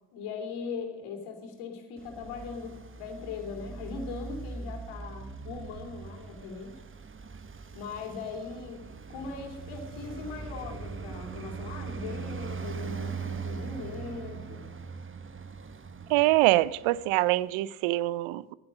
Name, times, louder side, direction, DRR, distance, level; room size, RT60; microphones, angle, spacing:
voice 1, 0.1-6.8 7.7-8.8 9.1-14.7, left 5 dB, 75° left, 3.2 m, -39 dB
Traffic noise roadway noise, 2.0-17.4, right 5 dB, 25° right, 1.1 m, -41 dB
voice 2, 16.1-18.5, right 17 dB, 70° right, 0.7 m, -24 dB
13.0 x 9.6 x 6.3 m
hypercardioid pair, 60°, 50 cm